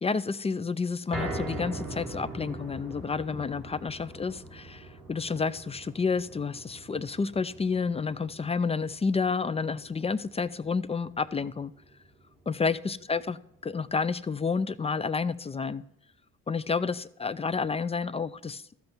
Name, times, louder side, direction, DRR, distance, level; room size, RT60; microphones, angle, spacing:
voice 1, 0.0-11.7 12.5-15.8 16.5-18.6, left 5 dB, 20° left, 0.4 m, -30 dB
sound 1, 1.1-13.4 13.8-13.9 14.3-14.4, right 2 dB, ahead, 4.4 m, -42 dB
13.0 x 7.7 x 4.4 m
cardioid pair, 90°, 30 cm